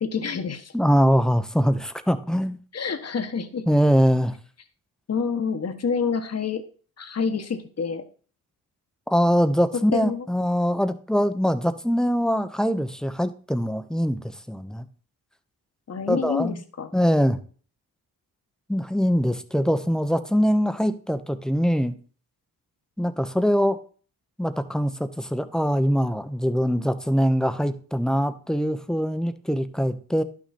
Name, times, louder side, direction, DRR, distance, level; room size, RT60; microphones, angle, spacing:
voice 1, 0.0-0.7 2.7-3.6 5.1-6.6 7.0-8.0 9.9-10.3 15.9-16.9, left 5 dB, 40° left, 8 dB, 1.4 m, -27 dB
voice 2, 0.7-2.6 3.7-4.3 9.1-14.2 14.5-14.8 16.1-16.6 16.9-17.4 18.7-21.9 23.0-23.8 24.4-30.2, equal, ahead, 9 dB, 1.0 m, -23 dB
11.0 x 6.2 x 4.3 m, 0.41 s
cardioid pair, 80°, 38 cm